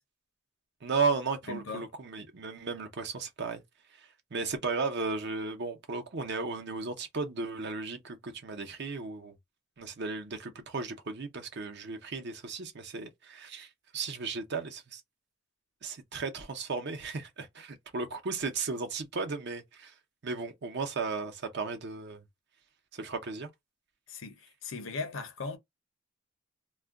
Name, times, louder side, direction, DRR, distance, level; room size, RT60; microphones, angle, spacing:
voice 1, 0.8-3.6 4.3-9.3 9.8-13.7 13.9-15.0 15.8-19.9 20.2-22.2 22.9-23.5, right 4 dB, 55° right, 0.7 m, -35 dB
voice 2, 1.5-1.9 24.1-25.6, left 3 dB, 70° left, 0.6 m, -38 dB
2.3 x 2.2 x 3.5 m
head